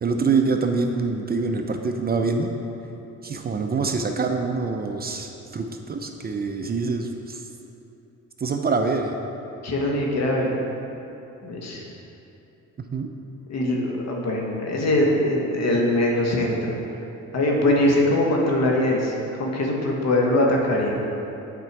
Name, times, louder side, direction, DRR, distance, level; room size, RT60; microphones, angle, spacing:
voice 1, 0.0-2.5 3.2-7.4 8.4-9.2 12.9-13.1, right 4 dB, 30° right, 4 dB, 0.5 m, -25 dB
voice 2, 9.6-10.6 11.4-11.8 13.5-16.8 17.3-21.0, left 1 dB, 60° left, -1 dB, 1.4 m, -22 dB
8.4 x 4.4 x 4.7 m, 2.9 s
cardioid pair, 90°, 30 cm